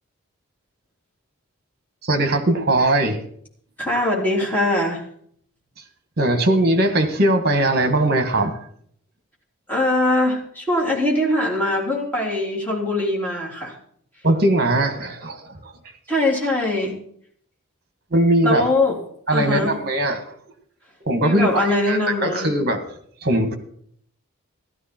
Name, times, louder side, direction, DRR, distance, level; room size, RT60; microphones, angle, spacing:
voice 1, 2.0-3.2 6.2-8.6 14.2-15.7 18.1-18.6 19.3-20.2 21.0-22.8 23.2-23.6, right 1 dB, 45° right, 1.7 m, -20 dB
voice 2, 3.8-5.0 9.7-13.7 16.1-17.0 18.4-19.0 19.3-19.8 21.2-22.5, left 1 dB, 10° left, 3.5 m, -22 dB
14.5 x 13.0 x 4.5 m
head